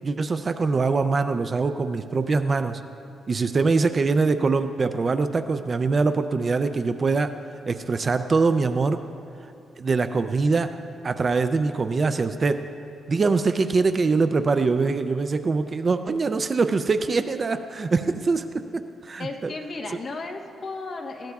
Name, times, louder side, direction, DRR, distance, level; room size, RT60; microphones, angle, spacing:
voice 1, 0.0-2.8 3.3-7.3 7.7-9.0 9.8-10.7 11.0-12.6 13.1-19.5, right 4 dB, 30° right, 9 dB, 0.4 m, -23 dB
voice 2, 19.2-21.3, left 3 dB, 40° left, 2 dB, 1.1 m, -35 dB
20.5 x 16.0 x 2.4 m, 2.6 s
cardioid pair, 160°, 0 cm